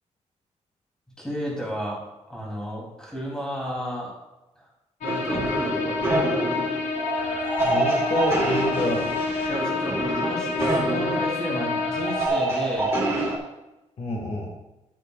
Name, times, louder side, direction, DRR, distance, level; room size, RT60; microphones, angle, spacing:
voice 1, 1.2-2.0 2.3-4.1 4.6-4.7 5.0-6.1 9.4-12.9, equal, 5° left, -3 dB, 3.0 m, -33 dB
sound 1, 5.0-12.3, left 4 dB, 80° left, 1.1 m, -28 dB
sound 2, 5.0-13.4, right 1 dB, 20° right, 2.5 m, -27 dB
voice 2, 7.6-9.2 14.0-14.5, left 1 dB, 55° left, 0 dB, 1.9 m, -28 dB
13.5 x 8.3 x 2.4 m, 0.99 s
wide cardioid pair, 160°, 12 cm